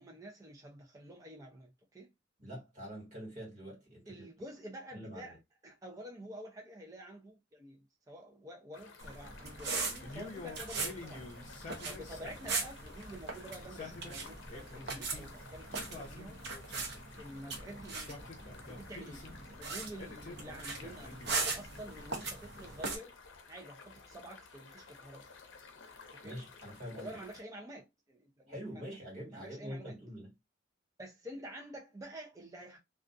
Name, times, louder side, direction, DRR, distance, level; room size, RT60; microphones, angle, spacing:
voice 1, 0.0-2.1 4.1-5.4 5.6-11.3 11.8-16.4 17.2-23.1 23.5-25.2 26.2-26.3 26.9-28.5 29.3-29.9 31.0-32.8, right 1 dB, 20° right, 0.5 m, -49 dB
voice 2, 2.4-4.3 4.9-5.4 26.2-27.2 28.5-30.3, equal, 40° right, 1.6 m, -45 dB
sound 1, 8.7-27.4, left 4 dB, 80° left, 0.6 m, -55 dB
sound 2, 9.0-23.0, right 3 dB, 60° right, 0.7 m, -40 dB
Male speech man speaking, 10.0-12.6 13.5-15.3 15.7-17.0 17.9-19.4 20.0-21.5, left 2 dB, 40° left, 0.7 m, -48 dB
2.5 x 2.3 x 2.5 m
head